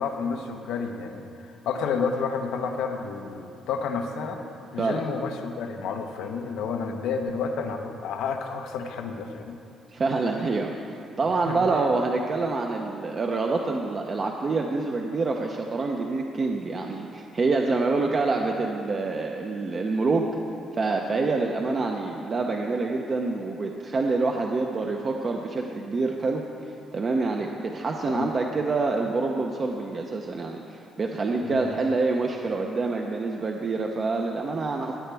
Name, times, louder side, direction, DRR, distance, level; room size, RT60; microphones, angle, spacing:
voice 1, 0.0-4.4 4.7-9.6 11.5-11.6 28.1-28.3 31.4-31.7, left 5 dB, 85° left, 4 dB, 0.9 m, -30 dB
voice 2, 9.9-20.3 20.7-34.9, right 3 dB, 40° right, 1 dB, 0.7 m, -26 dB
16.0 x 8.7 x 3.4 m, 2.5 s
cardioid pair, 90°, 0 cm